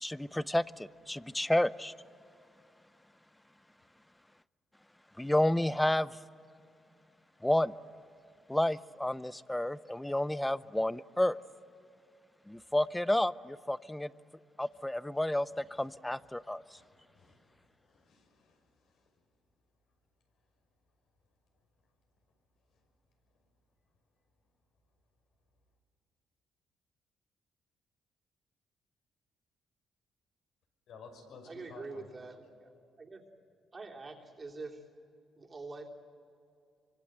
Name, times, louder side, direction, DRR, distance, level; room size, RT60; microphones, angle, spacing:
voice 1, 0.0-1.9 5.2-6.1 7.4-7.7 8.5-11.4 12.5-14.1 14.6-16.6, left 1 dB, 10° left, 17 dB, 0.6 m, -30 dB
voice 2, 17.9-18.6 30.9-32.1, left 4 dB, 75° left, 3 dB, 6.0 m, -52 dB
voice 3, 31.4-32.7 33.0-33.2 33.7-34.8 35.4-35.9, right 3 dB, 30° right, 0 dB, 3.3 m, -45 dB
25.5 x 25.0 x 7.9 m, 2.5 s
cardioid pair, 90°, 0 cm